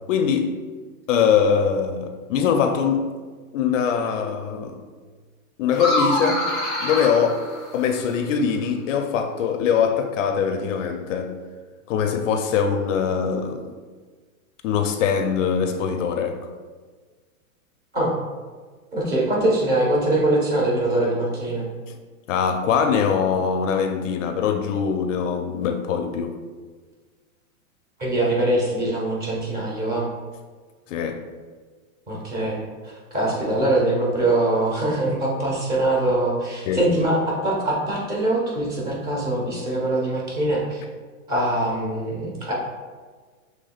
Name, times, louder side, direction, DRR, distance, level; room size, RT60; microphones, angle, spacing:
voice 1, 0.1-0.6 1.1-3.1 3.5-4.9 5.6-6.5 6.8-7.5 7.7-11.4 11.9-13.8 14.6-16.5 21.9-22.0 22.3-26.4 30.9-31.3 36.7-36.8, left 7 dB, 60° left, 0.5 m, -22 dB
sound 1, 5.7-8.2, left 1 dB, ahead, 0.3 m, -26 dB
voice 2, 18.9-21.7 28.0-30.1 32.1-40.8 41.3-42.5, right 1 dB, 20° right, 1.3 m, -23 dB
6.5 x 3.3 x 2.4 m
hypercardioid pair, 140°, 43 cm